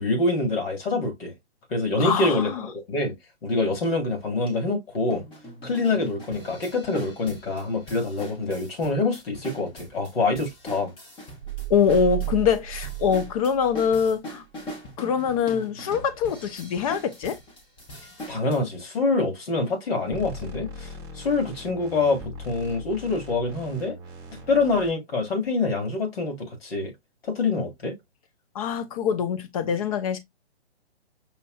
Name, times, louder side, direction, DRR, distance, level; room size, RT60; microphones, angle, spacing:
voice 1, 0.0-1.3 1.7-3.1 3.4-5.2 5.6-10.9 18.3-24.0 24.3-26.9 27.2-28.0, left 3 dB, 60° left, 1.9 m, -26 dB
voice 2, 2.0-2.7 11.7-14.4 15.0-17.4 28.5-30.2, left 7 dB, 35° left, 0.7 m, -24 dB
sound 1, 3.8-3.9 4.5-4.6 5.1-18.6, equal, 15° left, 1.0 m, -41 dB
sound 2, 11.4-14.1, right 19 dB, 85° right, 0.5 m, -33 dB
sound 3, 20.1-24.9, left 2 dB, 10° right, 1.1 m, -40 dB
5.6 x 2.6 x 2.3 m
hypercardioid pair, 140°, 33 cm